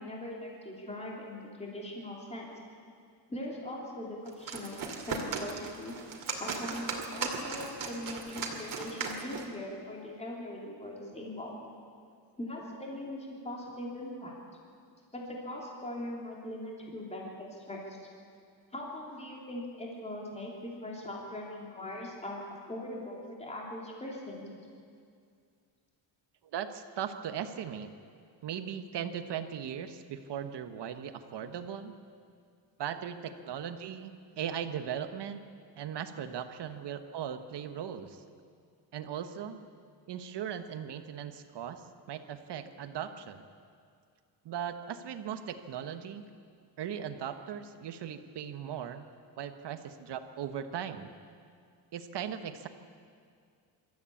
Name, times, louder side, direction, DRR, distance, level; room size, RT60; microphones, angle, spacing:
voice 1, 0.0-2.5 3.3-5.9 6.4-11.6 12.4-14.3 15.1-18.0 18.7-22.4 22.7-24.5, left 1 dB, 15° left, -2 dB, 3.2 m, -41 dB
sound 1, 4.3-9.5, right 4 dB, 45° right, 2.5 m, -37 dB
voice 2, 26.5-27.9 28.4-31.9 32.8-35.4 35.8-38.2 38.9-39.6 40.1-43.5 44.4-46.2 46.8-49.0 49.4-51.1 51.9-52.7, right 8 dB, 65° right, 9 dB, 1.3 m, -38 dB
24.0 x 13.5 x 8.6 m, 2.3 s
cardioid pair, 160°, 45 cm